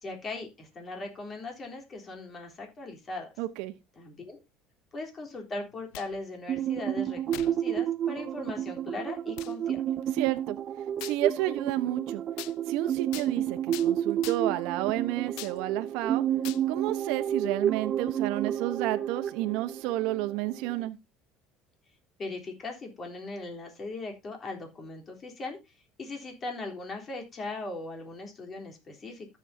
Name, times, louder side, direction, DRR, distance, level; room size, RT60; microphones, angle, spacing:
voice 1, 0.0-3.3 4.0-4.4 4.9-9.8 22.2-25.6 26.0-29.3, left 2 dB, 30° left, 3.7 m, -39 dB
voice 2, 3.4-3.7 10.1-10.6 11.0-12.2 12.7-16.2 16.7-21.0, right 15 dB, 75° right, 1.0 m, -31 dB
sound 1, 5.7-6.2 7.3-7.6 8.2-8.3 9.4-9.5 11.0-11.2 12.4-12.5 13.1-13.3 13.7-13.9 14.2-14.6 15.4-15.6 16.4-16.6, left 19 dB, 75° left, 0.5 m, -41 dB
sound 2, 6.5-20.9, right 10 dB, 40° right, 0.4 m, -31 dB
13.5 x 7.3 x 2.8 m
supercardioid pair, 115°, 0 cm